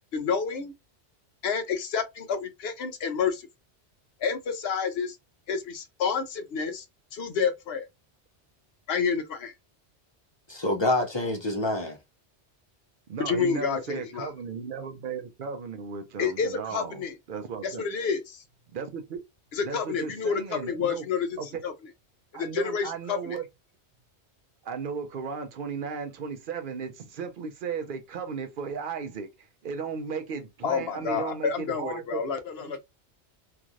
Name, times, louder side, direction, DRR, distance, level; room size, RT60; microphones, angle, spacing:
voice 1, 0.1-0.7 1.4-3.5 4.2-5.2 5.5-6.8 7.1-7.9 8.9-9.5 13.3-14.3 16.2-17.1 17.6-18.4 19.5-21.7 22.3-23.4 30.6-32.8, left 6 dB, 65° left, 0.9 m, -29 dB
voice 2, 10.5-12.0, left 2 dB, 40° left, 0.4 m, -26 dB
voice 3, 13.1-17.0 17.3-17.8 18.7-19.2 19.6-21.1 21.4-21.6 22.3-23.4 24.6-29.3 29.6-32.2 32.6-32.8, right 5 dB, 60° right, 0.6 m, -35 dB
2.9 x 2.5 x 2.4 m
omnidirectional pair, 1.2 m